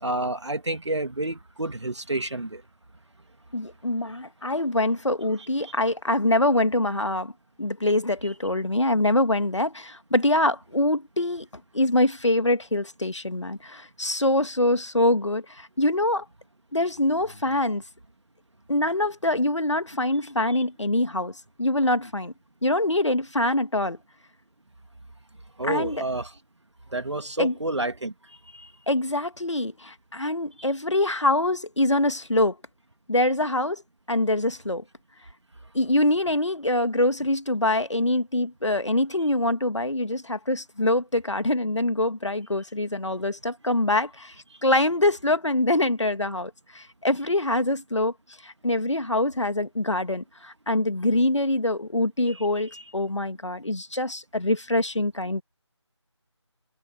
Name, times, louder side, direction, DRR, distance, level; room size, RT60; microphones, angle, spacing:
voice 1, 0.0-2.6 5.6-5.7 8.2-8.3 20.5-20.6 25.6-26.3 26.9-28.7 30.6-30.7 52.3-52.5 52.7-52.8, right 2 dB, 70° right, 2.6 m, -30 dB
voice 2, 3.5-7.3 7.6-11.5 11.7-16.3 16.7-17.8 18.7-22.3 22.6-24.0 25.6-26.0 27.4-27.5 28.9-32.6 33.1-33.8 34.1-34.8 35.7-44.3 44.6-48.1 48.4-55.4, left 1 dB, 75° left, 2.2 m, -24 dB
figure-of-eight pair, 165°, 15 cm